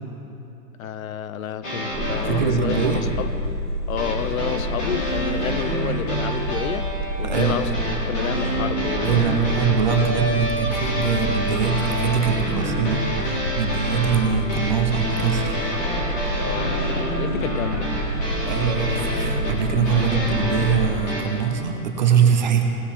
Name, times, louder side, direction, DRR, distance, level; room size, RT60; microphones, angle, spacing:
voice 1, 0.8-3.4 3.9-6.9 7.2-7.7 8.1-9.3 16.3-17.9, left 9 dB, 65° left, 14 dB, 0.6 m, -30 dB
sound 1, 1.6-3.1 4.0-21.2, equal, 15° left, 1.6 m, -28 dB
sound 2, 1.9-20.8, equal, 5° right, 1.0 m, -28 dB
voice 2, 2.2-3.1 7.2-7.6 9.0-15.6 18.4-22.6, right 7 dB, 30° right, 4 dB, 0.7 m, -23 dB
18.5 x 7.4 x 4.3 m, 2.9 s
hypercardioid pair, 175°, 46 cm